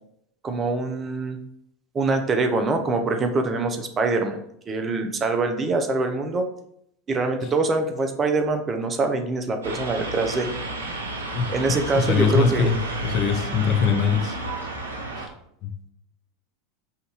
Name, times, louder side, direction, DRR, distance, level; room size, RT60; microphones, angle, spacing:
voice 1, 0.4-1.4 1.9-4.4 4.7-6.5 7.1-10.5 11.5-12.7, right 3 dB, 30° right, 6 dB, 0.7 m, -24 dB
sound 1, 9.6-15.3, right 2 dB, 85° right, 0.7 m, -32 dB
voice 2, 11.3-12.8 13.0-14.4 15.6-15.7, left 6 dB, 50° left, 5 dB, 0.7 m, -22 dB
5.7 x 2.6 x 3.0 m, 0.73 s
hypercardioid pair, 85°, 0 cm